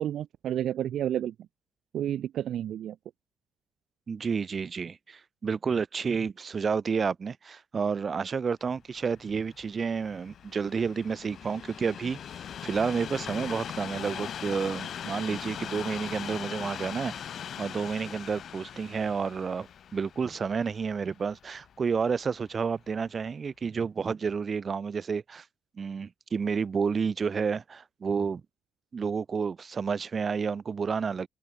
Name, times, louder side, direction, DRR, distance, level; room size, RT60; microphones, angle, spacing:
voice 1, 0.0-1.3 1.9-3.0, right 11 dB, 70° right, 0.8 m, -30 dB
voice 2, 4.1-12.2 12.6-17.3 17.6-25.4 25.8-28.4 28.9-31.3, right 5 dB, 40° right, 2.1 m, -30 dB
Train, 9.0-22.2 22.9-23.0, left 9 dB, 60° left, 2.2 m, -40 dB
cardioid pair, 90°, 0 cm